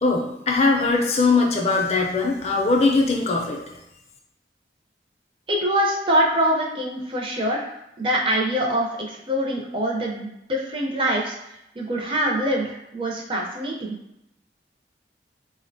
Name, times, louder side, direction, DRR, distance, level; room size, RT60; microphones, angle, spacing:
voice 1, 0.0-3.6, left 3 dB, 35° left, 0 dB, 0.4 m, -20 dB
voice 2, 5.5-7.7 8.0-11.4 11.8-13.9, equal, 30° right, -1 dB, 0.4 m, -24 dB
3.8 x 2.1 x 2.5 m, 0.84 s
head